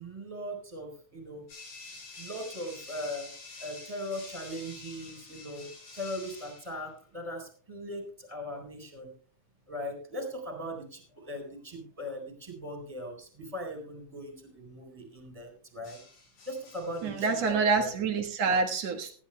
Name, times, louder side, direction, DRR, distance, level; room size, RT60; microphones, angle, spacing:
voice 1, 0.0-1.4 2.2-3.3 3.6-5.7 5.9-9.1 9.7-16.0 16.5-18.0, equal, 10° right, 3 dB, 3.6 m, -39 dB
sound 1, 1.5-6.8 10.3-10.6 15.8-17.5, left 3 dB, 85° left, 8.0 m, -48 dB
voice 2, 17.0-19.2, right 4 dB, 55° right, 3 dB, 1.9 m, -27 dB
19.5 x 14.5 x 2.2 m, 0.43 s
omnidirectional pair, 4.8 m